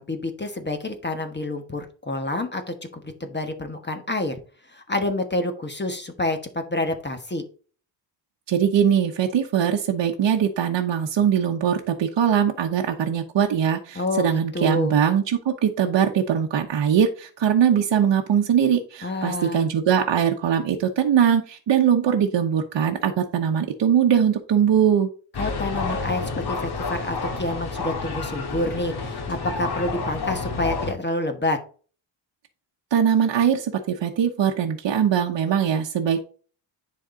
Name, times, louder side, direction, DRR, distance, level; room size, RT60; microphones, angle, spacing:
voice 1, 0.0-4.3 4.7-7.4 13.9-14.9 19.0-19.7 25.4-31.6, left 1 dB, 20° left, 6 dB, 1.2 m, -28 dB
voice 2, 8.5-25.1 32.9-36.2, right 8 dB, 65° right, 1 dB, 1.1 m, -21 dB
sound 1, 25.3-30.9, left 4 dB, 55° left, 1.8 m, -29 dB
10.0 x 4.1 x 3.8 m, 0.39 s
wide cardioid pair, 125°, 47 cm